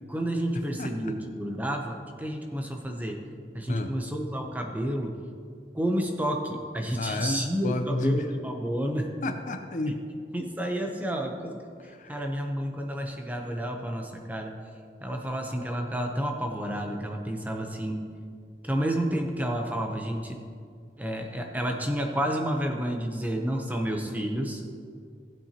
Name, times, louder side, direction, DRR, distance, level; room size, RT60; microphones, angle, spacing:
voice 1, 0.1-3.2 3.5-5.2 5.7-9.1 10.3-14.6 15.0-18.1 18.6-20.4 21.0-24.6, right 1 dB, 10° right, 2 dB, 0.8 m, -30 dB
voice 2, 0.8-1.1 3.7-3.9 7.0-8.3 9.2-10.0 11.9-12.1, left 2 dB, 45° left, 6 dB, 0.5 m, -30 dB
16.0 x 7.9 x 2.9 m, 2.2 s
head